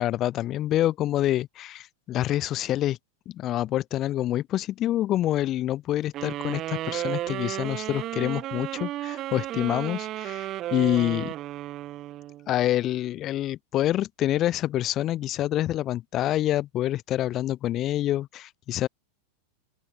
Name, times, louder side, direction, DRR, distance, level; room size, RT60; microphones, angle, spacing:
voice 1, 0.0-3.0 3.3-11.3 12.5-18.9, left 13 dB, 35° left, 3.0 m, -27 dB
sound 1, 6.1-12.5, right 14 dB, 35° right, 2.1 m, -33 dB
open air
figure-of-eight pair, 90°, 0 cm